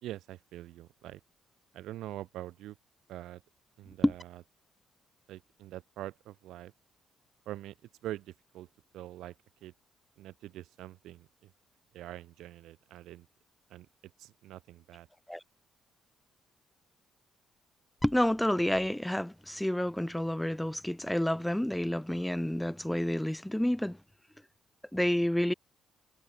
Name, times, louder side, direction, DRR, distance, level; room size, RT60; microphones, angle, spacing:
voice 1, 0.0-1.2 1.7-2.8 3.1-3.4 3.8-4.4 5.3-6.7 7.5-7.8 8.0-8.7 8.9-9.4 9.6-9.7 10.2-11.5 11.9-13.3 13.7-13.9 14.2-15.1, right 14 dB, 85° right, 1.9 m, -44 dB
voice 2, 18.0-24.0 24.9-25.5, left 1 dB, 5° left, 0.5 m, -29 dB
cardioid pair, 90°, 0 cm